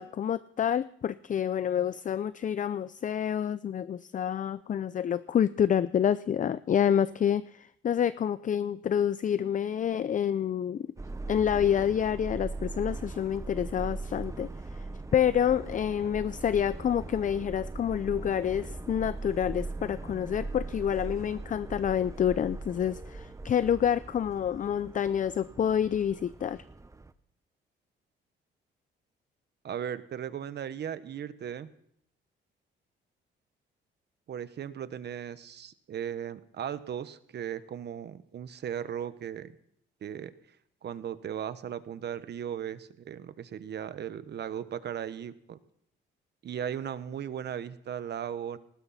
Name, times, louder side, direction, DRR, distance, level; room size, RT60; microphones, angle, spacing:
voice 1, 0.0-10.8 11.3-14.9 15.1-26.6, left 9 dB, 40° left, 15 dB, 0.5 m, -28 dB
Subway metro underground, 11.0-27.1, right 3 dB, 15° right, 1.0 m, -40 dB
voice 2, 29.6-31.7 34.3-39.6 40.0-40.3 40.8-45.6 46.4-48.6, right 9 dB, 60° right, 13 dB, 1.2 m, -37 dB
19.5 x 16.0 x 4.2 m, 0.70 s
cardioid pair, 90°, 20 cm